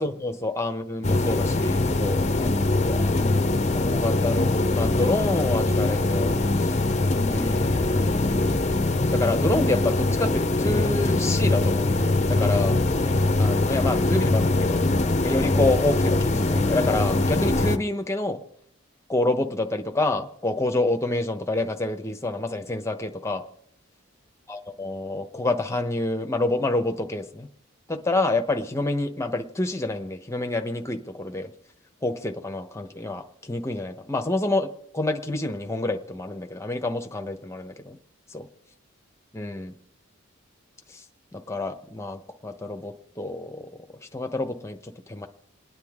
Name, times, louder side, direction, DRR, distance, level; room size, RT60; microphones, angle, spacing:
voice 1, 0.0-3.1 3.8-6.7 7.3-8.7 9.1-12.8 13.4-14.8 15.2-18.4 19.1-23.4 24.5-27.5 27.9-31.5 32.0-34.7 34.9-38.0 38.3-38.5 39.3-39.7 41.3-43.7 44.1-45.3, left 2 dB, 15° left, 5 dB, 0.9 m, -28 dB
sound 1, 1.0-17.8, left 2 dB, 30° left, 0.7 m, -22 dB
28.5 x 9.9 x 3.7 m, 0.77 s
head